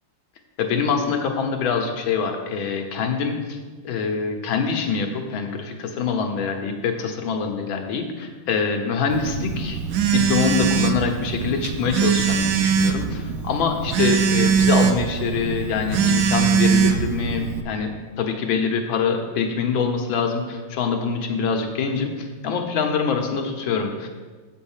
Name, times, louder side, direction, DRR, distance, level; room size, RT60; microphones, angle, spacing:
voice 1, 0.6-3.3 3.8-9.8 10.1-24.1, left 5 dB, 85° left, 4 dB, 1.8 m, -24 dB
Telephone, 9.1-17.6, right 7 dB, 70° right, 0.8 m, -22 dB
7.8 x 5.3 x 7.3 m, 1.4 s
omnidirectional pair, 2.1 m